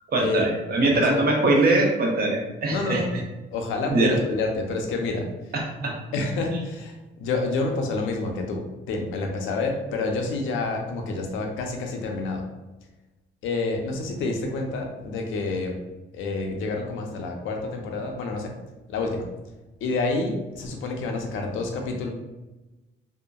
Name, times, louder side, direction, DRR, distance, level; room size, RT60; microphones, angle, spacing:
voice 1, 0.1-3.0 3.9-4.1 5.5-6.0 6.5-6.6, right 2 dB, 50° right, -1 dB, 0.8 m, -22 dB
voice 2, 0.8-1.2 2.7-3.1 3.5-5.3 6.1-12.4 13.4-15.8 16.1-18.5 18.9-19.3 19.8-22.1, left 3 dB, 85° left, 2 dB, 0.5 m, -28 dB
2.7 x 2.4 x 2.3 m, 1.1 s
cardioid pair, 90°, 20 cm